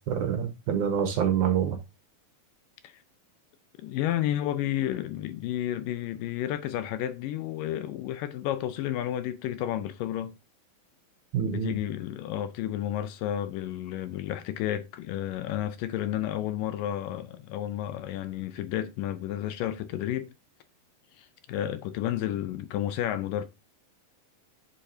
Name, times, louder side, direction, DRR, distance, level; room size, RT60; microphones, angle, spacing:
voice 1, 0.1-1.8 11.3-11.8, right 8 dB, 70° right, 2.1 m, -26 dB
voice 2, 3.8-10.4 11.4-20.3 21.2-23.4, left 12 dB, 80° left, 2.2 m, -31 dB
8.7 x 7.3 x 2.7 m
omnidirectional pair, 4.2 m